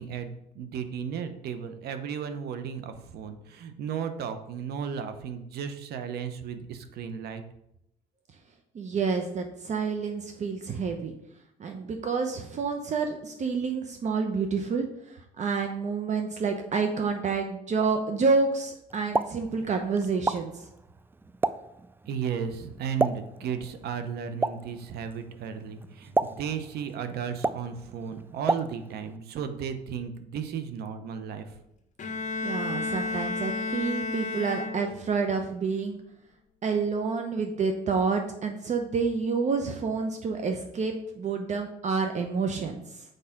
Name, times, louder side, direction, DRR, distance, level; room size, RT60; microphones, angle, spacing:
voice 1, 0.0-7.4 22.1-31.5, right 7 dB, 70° right, 9 dB, 0.9 m, -34 dB
voice 2, 8.7-11.1 11.6-20.7 32.4-36.0 36.6-43.0, right 4 dB, 45° right, 5 dB, 0.9 m, -29 dB
Explosion, 18.9-29.2, right 3 dB, 15° right, 0.3 m, -33 dB
Bowed string instrument, 32.0-35.2, left 4 dB, 45° left, 1.4 m, -32 dB
6.8 x 4.8 x 5.8 m, 0.79 s
cardioid pair, 110°, 17 cm